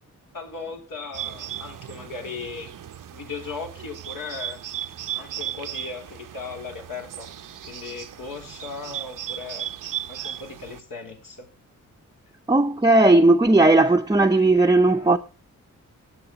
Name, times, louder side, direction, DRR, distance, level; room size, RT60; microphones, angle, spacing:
voice 1, 0.3-2.7 3.1-4.6 5.1-7.3 7.7-9.7 10.1-11.5, left 4 dB, 80° left, 3.9 m, -37 dB
Bird, 1.1-10.8, right 11 dB, 75° right, 0.7 m, -36 dB
voice 2, 12.5-15.2, right 2 dB, 10° right, 0.6 m, -16 dB
19.0 x 6.8 x 4.0 m
wide cardioid pair, 110°, 32 cm